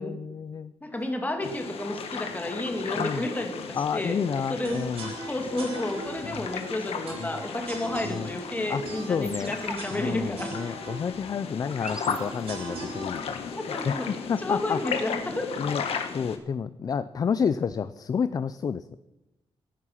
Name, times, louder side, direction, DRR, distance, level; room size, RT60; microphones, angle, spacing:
voice 1, 0.0-0.7 3.0-3.2 3.7-5.1 6.3-6.4 7.2-7.3 8.1-8.3 8.7-8.8 9.1-9.5 9.9-13.6 13.8-14.8 15.6-15.8 16.1-19.0, left 6 dB, 40° left, 14 dB, 0.4 m, -30 dB
voice 2, 0.8-4.9 5.2-10.5 13.5-15.5, left 1 dB, 15° left, 4 dB, 2.1 m, -31 dB
sound 1, 1.4-16.4, left 6 dB, 75° left, 1.6 m, -36 dB
sound 2, 4.6-14.7, right 3 dB, 70° right, 3.9 m, -41 dB
sound 3, 9.2-12.9, right 1 dB, 5° right, 0.9 m, -44 dB
16.0 x 9.5 x 5.8 m, 0.97 s
wide cardioid pair, 130°, 10 cm